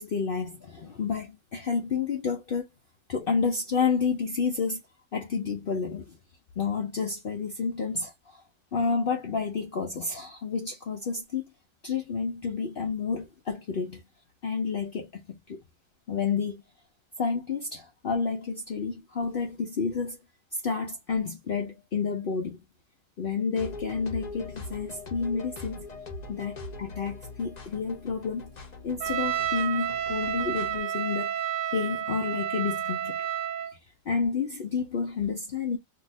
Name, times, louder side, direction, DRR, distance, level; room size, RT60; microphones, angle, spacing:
voice 1, 0.0-2.6 3.1-4.8 5.1-6.2 6.6-8.4 8.7-11.4 11.8-14.0 14.4-15.6 16.1-16.6 17.2-20.2 20.6-22.6 23.2-25.8 26.3-28.5 28.8-31.4 31.7-33.2 34.1-35.8, left 5 dB, 90° left, 0.4 m, -30 dB
sound 1, 23.6-30.8, left 3 dB, 40° left, 0.6 m, -42 dB
Trumpet, 29.0-33.7, right 10 dB, 80° right, 1.1 m, -30 dB
2.8 x 2.2 x 4.0 m
omnidirectional pair, 1.8 m